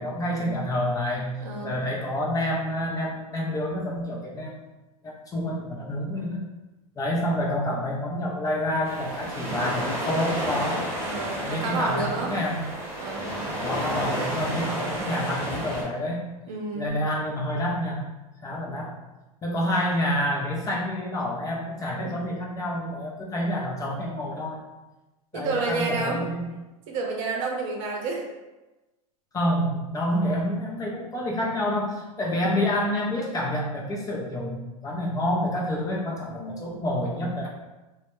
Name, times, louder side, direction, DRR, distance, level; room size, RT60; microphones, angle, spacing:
voice 1, 0.0-1.4 1.6-4.5 5.0-6.4 7.0-10.8 11.4-12.7 13.6-16.2 16.8-18.1 18.4-18.9 19.4-24.6 25.3-26.5 29.3-37.5, left 1 dB, 20° left, -2 dB, 0.4 m, -28 dB
voice 2, 1.4-1.7 11.0-12.3 13.0-13.3 14.7-14.9 16.5-16.9 25.3-26.3 26.9-28.3 32.3-32.6 36.3-36.7, right 3 dB, 55° right, -1 dB, 0.7 m, -30 dB
sound 1, 8.8-15.8, equal, 15° right, 0.9 m, -31 dB
2.1 x 2.1 x 2.9 m, 1.1 s
hypercardioid pair, 105°, 19 cm